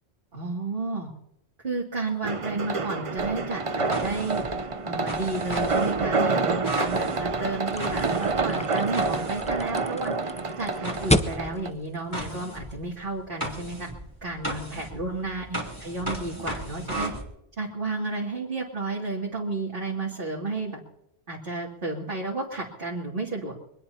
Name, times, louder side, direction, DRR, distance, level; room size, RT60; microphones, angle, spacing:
voice 1, 0.3-1.1 1.6-4.4 4.8-10.1 10.6-13.9 14.2-17.1 17.6-20.8 21.3-23.6, right 3 dB, 55° right, -4 dB, 2.7 m, -32 dB
sound 1, 2.2-11.7, right 3 dB, 35° right, 0.7 m, -28 dB
sound 2, 3.2-10.0 10.8-17.2, right 1 dB, 20° right, 3.5 m, -37 dB
sound 3, 7.7-13.0, left 1 dB, 10° left, 0.5 m, -31 dB
24.5 x 19.0 x 2.8 m, 0.79 s
omnidirectional pair, 1.1 m